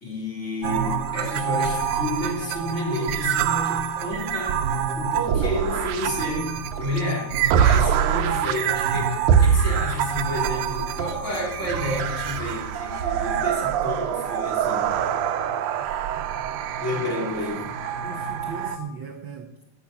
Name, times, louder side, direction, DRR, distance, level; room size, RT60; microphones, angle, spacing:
voice 1, 0.0-4.7 4.9-15.0 16.8-17.7, left 1 dB, 25° left, -2 dB, 3.2 m, -30 dB
sound 1, 0.6-18.9, equal, 10° left, 1.6 m, -42 dB
sound 2, 0.6-18.8, right 8 dB, 90° right, 2.2 m, -25 dB
voice 2, 17.1-17.4 18.0-19.6, right 7 dB, 70° right, 6 dB, 1.1 m, -38 dB
14.0 x 8.8 x 5.8 m, 0.81 s
omnidirectional pair, 3.4 m